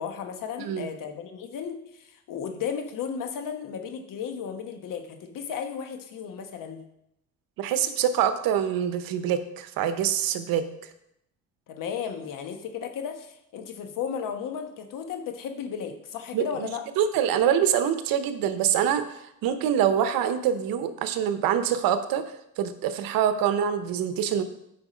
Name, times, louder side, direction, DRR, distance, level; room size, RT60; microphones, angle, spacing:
voice 1, 0.0-6.8 11.7-16.8, left 7 dB, 70° left, 6 dB, 1.2 m, -34 dB
voice 2, 7.6-10.7 16.3-16.7 17.0-22.2 22.6-24.4, right 9 dB, 85° right, 10 dB, 0.9 m, -25 dB
8.8 x 4.8 x 5.1 m, 0.80 s
cardioid pair, 115°, 34 cm